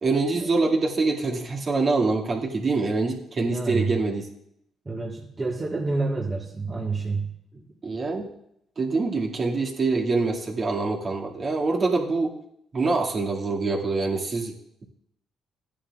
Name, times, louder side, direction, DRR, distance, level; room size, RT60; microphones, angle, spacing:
voice 1, 0.0-4.2 7.8-8.3 8.8-12.3 12.7-14.8, right 3 dB, 45° right, -2 dB, 2.2 m, -25 dB
voice 2, 3.5-4.0 4.8-7.6, right 3 dB, 30° right, -2 dB, 1.5 m, -29 dB
14.5 x 9.9 x 2.4 m, 0.76 s
supercardioid pair, 60°, 0 cm